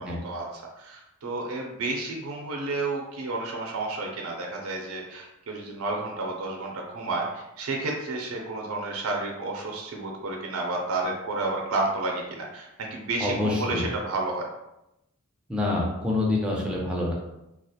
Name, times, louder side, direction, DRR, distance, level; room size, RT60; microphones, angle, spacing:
voice 1, 0.0-14.5, right 2 dB, 85° right, 0 dB, 0.5 m, -31 dB
voice 2, 13.2-13.9 15.5-17.1, left 2 dB, 5° right, -3 dB, 0.5 m, -26 dB
2.4 x 2.1 x 2.7 m, 0.88 s
head